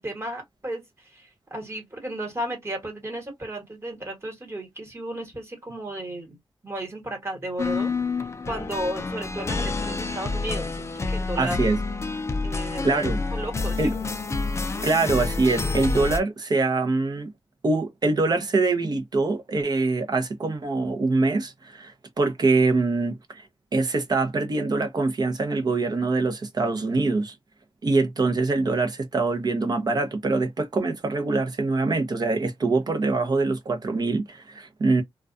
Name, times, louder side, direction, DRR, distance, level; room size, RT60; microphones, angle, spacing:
voice 1, 0.0-6.4 6.6-7.9 8.4-11.7 12.4-13.0 13.3-13.9, right 1 dB, 25° right, 1.2 m, -34 dB
sound 1, 7.6-16.2, left 3 dB, 30° left, 0.4 m, -28 dB
voice 2, 11.4-11.8 12.8-13.2 13.8-14.0 14.8-17.3 17.6-23.4 23.7-27.4 27.8-35.0, right 3 dB, 45° right, 0.7 m, -24 dB
2.3 x 2.3 x 2.5 m
wide cardioid pair, 90°, 9 cm